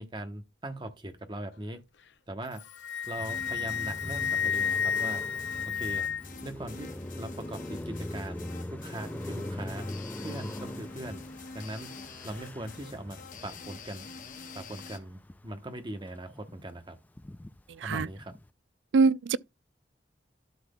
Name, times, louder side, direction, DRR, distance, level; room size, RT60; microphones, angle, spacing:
voice 1, 0.0-1.8 2.3-2.6 3.1-5.2 5.7-6.1 6.4-9.9 10.2-11.2 11.5-11.9 12.2-14.1 14.5-17.0 17.8-18.3, right 1 dB, 25° right, 1.0 m, -40 dB
Wind instrument woodwind instrument, 2.5-6.4, left 7 dB, 75° left, 0.6 m, -31 dB
sound 1, 3.0-15.0, left 4 dB, 45° left, 1.0 m, -47 dB
Car passing by, 3.2-15.6 16.0-18.5, left 1 dB, 10° left, 0.3 m, -42 dB
voice 2, 17.8-18.1 18.9-19.4, right 4 dB, 85° right, 0.4 m, -23 dB
12.0 x 5.9 x 2.3 m
head